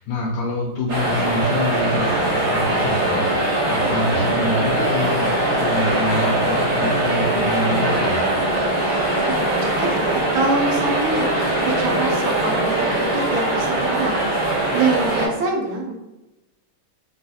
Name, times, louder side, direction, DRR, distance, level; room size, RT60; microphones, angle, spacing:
voice 1, 0.0-3.2 3.7-8.2, left 1 dB, 85° left, -3 dB, 1.5 m, -26 dB
sound 1, 0.9-15.3, right 1 dB, 55° right, 1.4 m, -21 dB
voice 2, 9.3-11.3 11.6-14.4 14.7-15.9, right 3 dB, 75° right, 1 dB, 1.4 m, -25 dB
3.7 x 2.4 x 2.7 m, 0.99 s
omnidirectional pair, 2.4 m